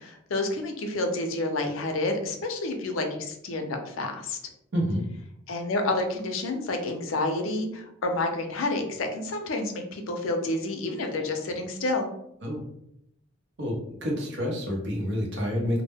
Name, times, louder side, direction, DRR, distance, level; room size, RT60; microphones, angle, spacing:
voice 1, 0.0-4.4 5.5-12.1, left 2 dB, 70° left, 4 dB, 0.5 m, -29 dB
voice 2, 13.6-15.8, equal, 55° right, -1 dB, 0.7 m, -28 dB
2.1 x 2.1 x 3.3 m, 0.75 s
head